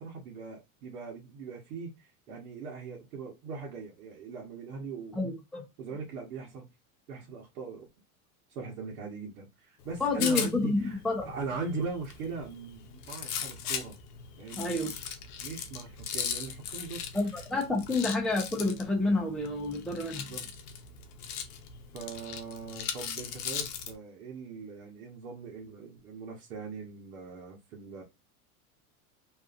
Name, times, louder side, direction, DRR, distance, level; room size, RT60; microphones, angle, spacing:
voice 1, 0.0-5.3 5.8-6.7 7.1-7.9 8.5-14.0 14.4-14.9 15.4-17.0 20.2-20.4 21.9-28.0, right 4 dB, 75° right, 1.0 m, -40 dB
voice 2, 5.2-5.6 10.0-11.3 14.6-14.9 17.1-20.3, left 2 dB, ahead, 0.6 m, -29 dB
Rattle, 9.8-23.9, left 8 dB, 90° left, 0.7 m, -39 dB
2.7 x 2.4 x 2.4 m
hypercardioid pair, 105°, 44 cm